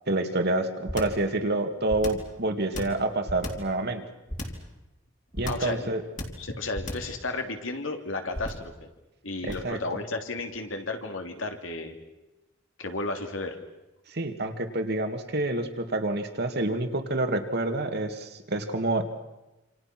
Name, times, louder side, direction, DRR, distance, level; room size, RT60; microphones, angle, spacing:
voice 1, 0.1-4.0 5.4-6.0 9.4-9.8 14.1-19.0, right 2 dB, 55° right, 6 dB, 2.2 m, -28 dB
sound 1, 0.9-1.3 1.9-2.3 2.7-3.7 4.3-4.7 5.4-5.8 6.2-6.5 6.8-7.2 8.3-8.7 9.5-9.8, left 1 dB, 40° left, 3.4 m, -34 dB
voice 2, 5.4-5.9 6.4-8.9 9.2-12.0 12.8-13.6, left 2 dB, 80° left, 5 dB, 3.0 m, -33 dB
27.5 x 27.0 x 6.1 m, 1.0 s
head